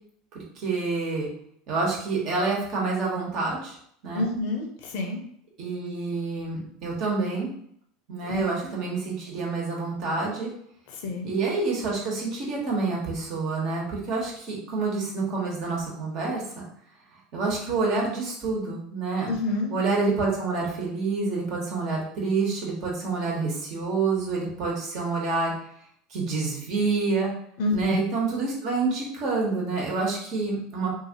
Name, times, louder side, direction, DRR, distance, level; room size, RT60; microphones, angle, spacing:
voice 1, 0.3-1.3 1.7-3.8 4.0-4.3 5.6-7.5 8.1-10.5 11.2-16.4 17.3-19.3 19.7-25.5 26.1-27.3 27.7-31.0, right 3 dB, 60° right, -2 dB, 1.2 m, -27 dB
voice 2, 4.1-5.2 8.2-8.7 11.0-11.3 19.3-19.7 27.6-28.0, left 2 dB, 70° left, 1 dB, 0.7 m, -28 dB
2.8 x 2.5 x 2.9 m, 0.67 s
supercardioid pair, 100°, 0 cm